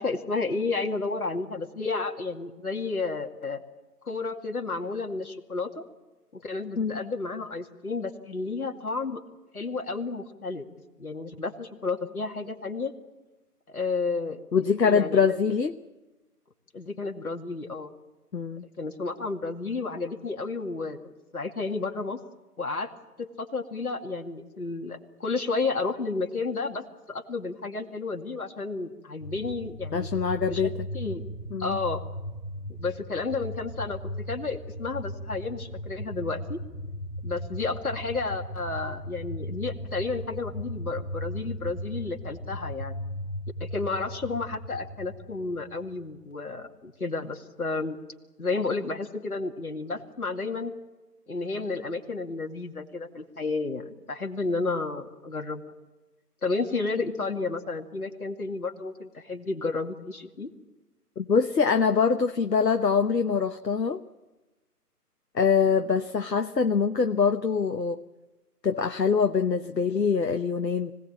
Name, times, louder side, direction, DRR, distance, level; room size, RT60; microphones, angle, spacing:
voice 1, 0.0-3.6 4.0-5.8 6.3-9.2 9.5-10.7 11.0-12.9 13.7-14.4 14.8-15.4 16.7-17.9 18.8-22.2 22.6-22.9 23.2-30.1 30.5-31.2 31.6-32.0 32.7-36.6 37.2-42.9 43.6-48.0 48.4-50.7 51.3-55.6 56.4-60.5, left 3 dB, 65° left, 3 dB, 2.4 m, -31 dB
voice 2, 14.5-15.8 18.3-18.7 29.9-30.9 31.5-31.8 61.2-64.0 65.3-68.0 68.6-70.9, left 5 dB, 85° left, 7 dB, 1.1 m, -24 dB
sound 1, 29.2-46.0, equal, 5° right, 2.9 m, -37 dB
24.5 x 17.5 x 8.9 m, 1.1 s
figure-of-eight pair, 165°, 48 cm